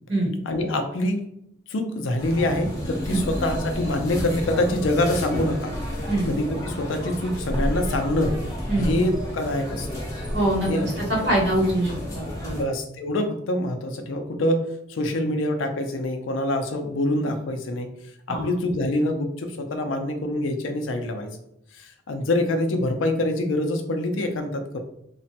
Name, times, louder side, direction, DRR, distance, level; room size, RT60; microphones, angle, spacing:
voice 1, 0.5-1.2 1.7-5.7 6.3-8.4 8.8-10.0 10.7-10.9 11.2-11.3 12.5-17.9 18.3-21.3 21.7-24.8, left 1 dB, 85° left, 6 dB, 0.5 m, -25 dB
sound 1, 2.2-12.6, equal, 15° left, 0.8 m, -31 dB
voice 2, 10.3-10.7 11.1-12.6 18.3-18.5, right 1 dB, 60° right, -2 dB, 1.0 m, -23 dB
3.0 x 2.1 x 2.7 m, 0.77 s
head